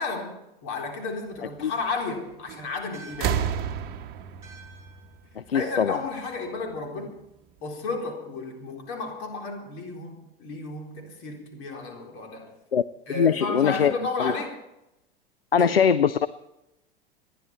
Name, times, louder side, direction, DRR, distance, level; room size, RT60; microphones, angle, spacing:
voice 1, 0.0-3.5 5.5-7.2 7.6-12.5 13.1-14.5 15.6-15.8, left 3 dB, 45° left, 4.0 m, -33 dB
sound 1, 2.5-2.8 3.1-5.9 7.0-7.1, right 8 dB, 35° right, 1.3 m, -31 dB
sound 2, 2.9-7.6, right 4 dB, 10° right, 6.6 m, -53 dB
voice 2, 5.4-6.0 12.7-12.8 13.1-13.9 14.2-14.3 15.5-16.3, left 7 dB, 85° left, 0.5 m, -22 dB
27.5 x 10.5 x 4.3 m
figure-of-eight pair, 85°, 29 cm